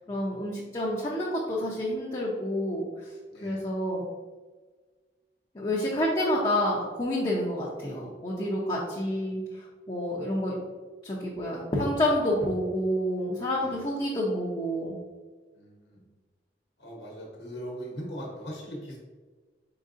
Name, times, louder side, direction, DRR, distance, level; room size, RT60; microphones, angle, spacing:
voice 1, 0.1-2.8 3.4-4.0 5.5-10.6 11.0-15.0, left 1 dB, 25° left, -5 dB, 0.6 m, -29 dB
voice 2, 3.3-3.6 9.2-9.4 13.5-13.8 15.5-16.0 16.8-19.0, equal, 70° left, -2 dB, 1.1 m, -40 dB
4.6 x 4.0 x 2.5 m, 1.4 s
head